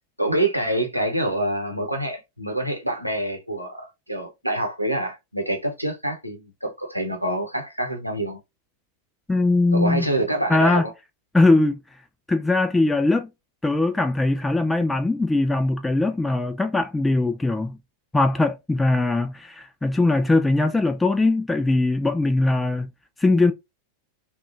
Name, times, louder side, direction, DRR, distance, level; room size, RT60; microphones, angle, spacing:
voice 1, 0.2-8.4 9.7-10.9, right 1 dB, 90° right, 0.8 m, -26 dB
voice 2, 9.3-10.1 10.5-10.8 11.3-11.8 12.3-13.3 13.6-17.8 18.1-22.9 23.2-23.5, left 2 dB, 10° left, 0.3 m, -20 dB
3.5 x 2.3 x 2.5 m
figure-of-eight pair, 90°, 0 cm